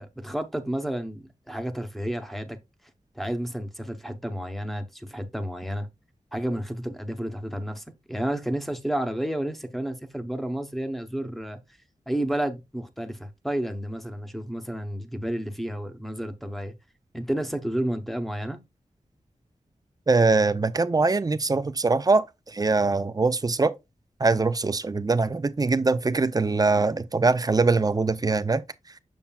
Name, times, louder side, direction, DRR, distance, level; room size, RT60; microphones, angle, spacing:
voice 1, 0.0-2.6 3.1-5.9 6.3-11.6 12.1-16.7 17.1-18.6, right 1 dB, ahead, 0.8 m, -31 dB
voice 2, 20.1-23.7 24.2-28.6, right 3 dB, 25° right, 0.5 m, -22 dB
7.2 x 6.2 x 2.3 m
wide cardioid pair, 120°, 14 cm